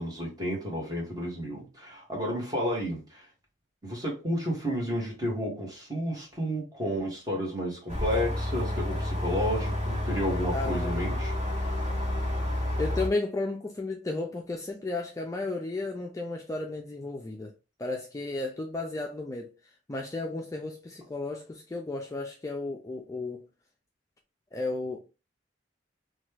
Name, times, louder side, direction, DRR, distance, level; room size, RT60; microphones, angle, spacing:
voice 1, 0.0-3.3 3.8-11.3, equal, 20° right, 1.2 m, -31 dB
sound 1, 7.9-13.1, left 1 dB, 40° right, 1.3 m, -30 dB
voice 2, 10.5-11.0 12.8-17.5 17.8-19.5 19.9-23.4 24.5-25.0, left 2 dB, 15° left, 0.3 m, -33 dB
2.9 x 2.2 x 3.2 m
head